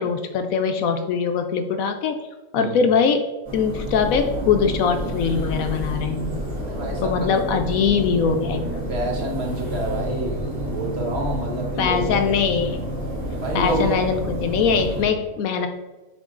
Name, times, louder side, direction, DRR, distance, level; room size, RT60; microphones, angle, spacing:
voice 1, 0.0-2.2 2.5-3.3 3.5-6.4 7.0-8.8 11.8-12.8 13.5-15.7, left 6 dB, 70° left, 7 dB, 0.9 m, -22 dB
sound 1, 3.4-15.0, equal, 70° right, 2.5 m, -29 dB
voice 2, 6.6-7.3 8.9-12.3 13.4-14.2, right 1 dB, 45° right, -1 dB, 1.2 m, -28 dB
7.1 x 3.9 x 3.7 m, 1.1 s
omnidirectional pair, 1.6 m